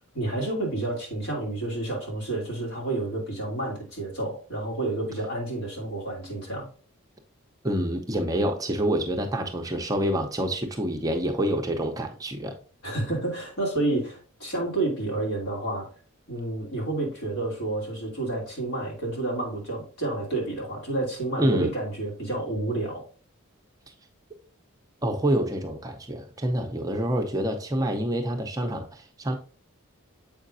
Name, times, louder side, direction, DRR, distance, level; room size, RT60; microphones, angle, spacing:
voice 1, 0.1-6.7 12.8-15.9 16.3-23.0, right 2 dB, 85° left, 2.7 m, -30 dB
voice 2, 7.6-12.5 21.4-21.7 25.0-29.4, right 1 dB, 15° right, 0.6 m, -27 dB
7.3 x 5.0 x 2.6 m
head